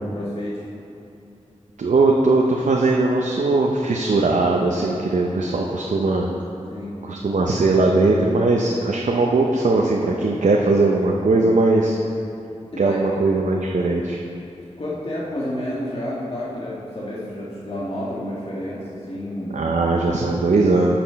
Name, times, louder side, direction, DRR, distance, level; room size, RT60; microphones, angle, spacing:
voice 1, 0.1-0.6 4.0-4.2 6.7-6.9 12.7-13.0 14.8-19.6, left 1 dB, 50° left, -7 dB, 1.6 m, -30 dB
voice 2, 1.8-6.3 7.0-12.0 12.8-14.2 19.5-20.9, right 3 dB, 85° right, 0 dB, 0.6 m, -19 dB
8.6 x 6.0 x 5.7 m, 2.7 s
wide cardioid pair, 60°, 12 cm